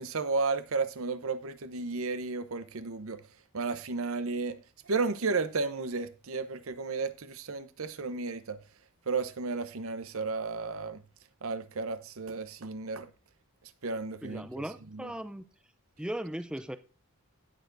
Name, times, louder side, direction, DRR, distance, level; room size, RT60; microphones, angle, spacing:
voice 1, 0.0-3.2 3.5-4.6 4.9-8.6 9.1-11.0 11.4-13.1 13.8-14.5 14.9-15.1, right 4 dB, 65° right, 0.8 m, -33 dB
voice 2, 14.2-15.4 16.0-16.8, right 1 dB, 5° right, 0.4 m, -37 dB
17.5 x 6.7 x 2.6 m
head